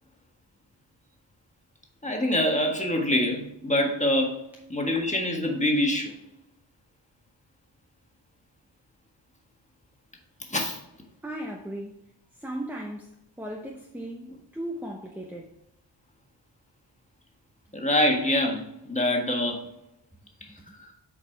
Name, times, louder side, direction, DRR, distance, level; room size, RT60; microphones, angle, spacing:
voice 1, 2.0-4.4 4.7-6.1 10.5-10.8 17.7-19.6, left 1 dB, 15° left, 1 dB, 1.5 m, -25 dB
voice 2, 11.2-12.0 12.4-14.3 14.5-15.5 20.2-20.8, right 1 dB, 5° right, 1 dB, 0.8 m, -37 dB
8.3 x 4.9 x 3.4 m, 0.82 s
wide cardioid pair, 105°, 46 cm